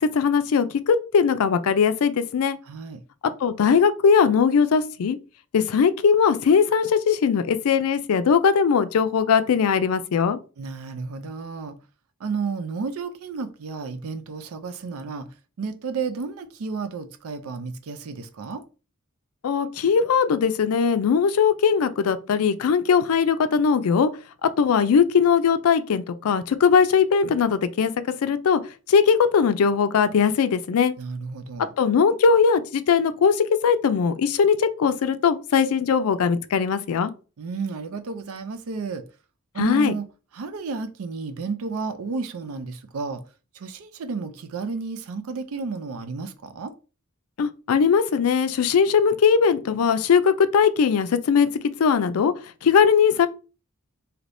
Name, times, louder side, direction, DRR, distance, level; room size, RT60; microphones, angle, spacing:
voice 1, 0.0-2.6 3.4-5.2 5.5-10.4 19.4-24.1 24.6-27.9 28.2-28.6 28.9-30.9 31.8-37.1 39.6-39.9 47.4-51.5 51.8-52.3 52.6-53.3, left 6 dB, 80° left, 0.4 m, -20 dB
voice 2, 2.7-3.0 10.6-11.8 12.2-15.3 15.6-18.6 31.0-31.7 37.4-39.0 39.5-40.0 40.3-43.2 43.5-46.7, right 4 dB, 80° right, 0.4 m, -32 dB
3.3 x 2.8 x 2.5 m
head